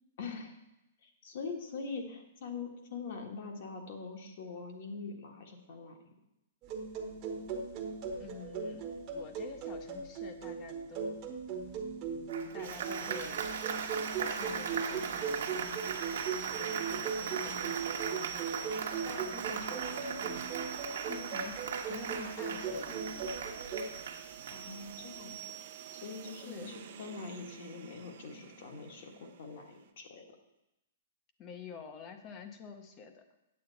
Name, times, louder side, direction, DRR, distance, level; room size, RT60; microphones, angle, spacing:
voice 1, 0.2-0.5 1.0-6.0 24.5-25.5 25.9-30.3, left 4 dB, 50° left, 3 dB, 1.4 m, -43 dB
sound 1, 6.6-23.8, right 5 dB, 25° right, 1.0 m, -39 dB
voice 2, 8.2-8.8 9.1-11.2 12.5-13.4 14.2-15.9 16.5-20.5 21.1-21.6 21.9-23.5 26.4-26.8 31.4-33.2, left 5 dB, 20° left, 7 dB, 0.7 m, -48 dB
Applause, 12.3-25.0, right 6 dB, 70° right, 1.1 m, -39 dB
sound 2, 12.6-29.9, right 10 dB, 50° right, 0.6 m, -47 dB
8.6 x 8.0 x 4.0 m, 0.89 s
hypercardioid pair, 170°, 0 cm